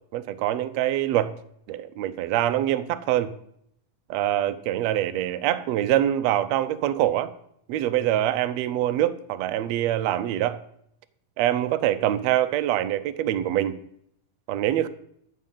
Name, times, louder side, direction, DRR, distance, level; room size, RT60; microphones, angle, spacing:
voice 1, 0.1-1.3 1.7-3.3 4.1-7.3 7.7-10.6 11.4-13.8 14.5-14.9, right 12 dB, 75° right, 11 dB, 1.6 m, -24 dB
14.0 x 7.2 x 5.6 m, 0.70 s
omnidirectional pair, 3.7 m